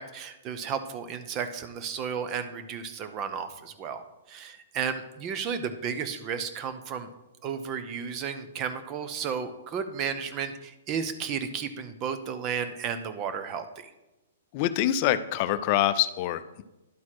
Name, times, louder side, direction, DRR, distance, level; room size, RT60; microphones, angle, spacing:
voice 1, 0.0-4.0 4.3-7.1 7.4-13.9, right 7 dB, 30° right, 9 dB, 0.8 m, -33 dB
voice 2, 14.5-16.6, left 12 dB, 40° left, 12 dB, 0.5 m, -25 dB
11.0 x 4.1 x 4.8 m, 0.97 s
hypercardioid pair, 125°, 0 cm